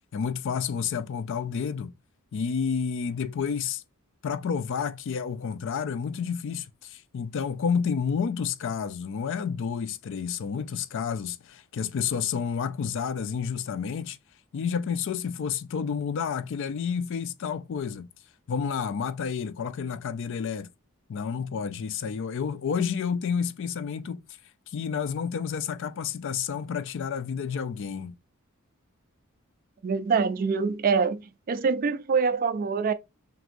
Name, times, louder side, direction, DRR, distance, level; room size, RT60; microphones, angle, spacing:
voice 1, 0.1-1.9 2.3-3.8 4.2-14.2 14.5-18.1 18.5-20.7 21.1-24.2 24.7-28.2, left 6 dB, 60° left, 0.4 m, -30 dB
voice 2, 29.8-31.2 31.5-32.9, right 5 dB, 40° right, 0.4 m, -24 dB
6.0 x 2.6 x 2.5 m
head